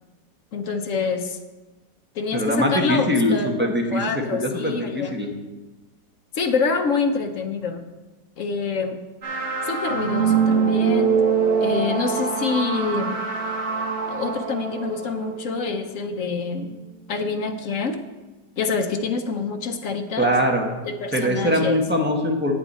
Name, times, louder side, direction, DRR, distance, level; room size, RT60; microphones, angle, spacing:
voice 1, 0.5-1.4 2.1-5.2 6.3-7.8 8.4-9.0 9.6-11.2 11.6-13.2 14.1-16.7 17.1-18.0 18.6-20.3 20.7-21.8, left 4 dB, 60° left, 6 dB, 0.9 m, -26 dB
voice 2, 2.3-5.3 20.2-20.7 21.1-22.5, equal, 10° right, 1 dB, 0.7 m, -22 dB
sound 1, 9.2-16.1, right 6 dB, 40° right, 2.0 m, -23 dB
9.7 x 8.3 x 4.2 m, 1.2 s
omnidirectional pair, 2.0 m